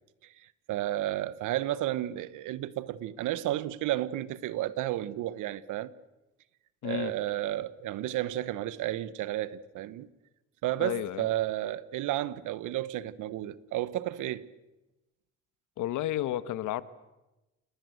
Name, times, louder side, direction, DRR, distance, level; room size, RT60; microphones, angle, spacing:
voice 1, 0.2-5.9 6.8-10.1 10.6-14.4, right 14 dB, 90° right, 1.2 m, -32 dB
voice 2, 6.8-7.1 10.8-11.3 15.8-16.8, left 14 dB, 90° left, 1.3 m, -32 dB
28.5 x 20.5 x 7.9 m
cardioid pair, 90°, 30 cm